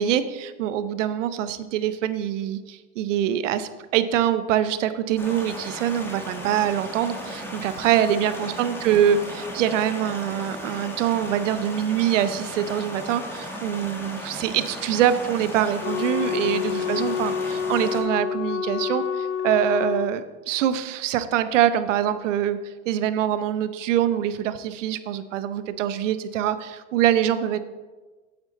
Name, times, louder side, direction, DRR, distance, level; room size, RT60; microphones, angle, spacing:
voice 1, 0.0-22.6 22.9-27.6, right 10 dB, 80° right, 12 dB, 0.8 m, -24 dB
sound 1, 5.2-18.0, equal, 5° left, 1.8 m, -36 dB
Wind instrument woodwind instrument, 15.8-20.1, left 8 dB, 80° left, 0.8 m, -28 dB
8.8 x 8.2 x 4.0 m, 1.3 s
hypercardioid pair, 120°, 37 cm